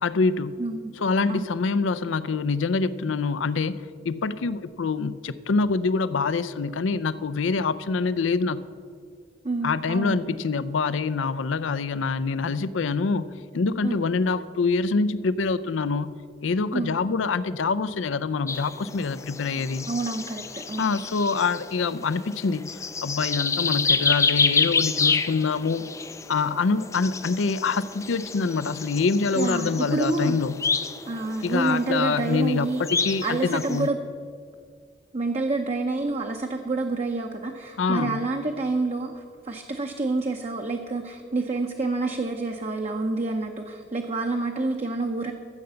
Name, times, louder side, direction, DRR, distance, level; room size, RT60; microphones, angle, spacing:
voice 1, 0.0-0.6 1.0-8.6 9.6-19.9 20.8-25.9 26.3-30.6 31.4-33.9 37.8-38.2, left 4 dB, 85° left, 15 dB, 0.5 m, -25 dB
voice 2, 0.6-0.9 1.3-1.5 9.4-10.4 13.8-14.0 16.7-16.9 19.9-20.8 29.3-30.4 31.1-32.8 33.2-34.0 35.1-45.3, right 3 dB, 35° right, 3 dB, 0.6 m, -28 dB
sound 1, 18.5-33.9, left 5 dB, 15° left, 0.3 m, -29 dB
13.0 x 7.7 x 6.9 m, 2.1 s
head